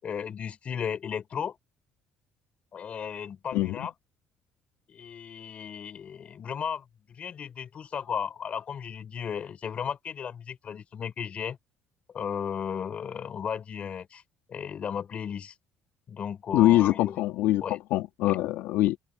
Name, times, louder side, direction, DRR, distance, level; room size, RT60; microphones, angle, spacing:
voice 1, 0.0-1.6 2.7-3.9 4.9-11.6 12.1-14.2 14.5-15.5 16.1-17.2 17.6-17.8 18.2-18.4, left 7 dB, 35° left, 4.7 m, -35 dB
voice 2, 3.5-3.9 16.5-19.0, left 16 dB, 85° left, 2.5 m, -24 dB
open air
cardioid pair, 155°, 4 cm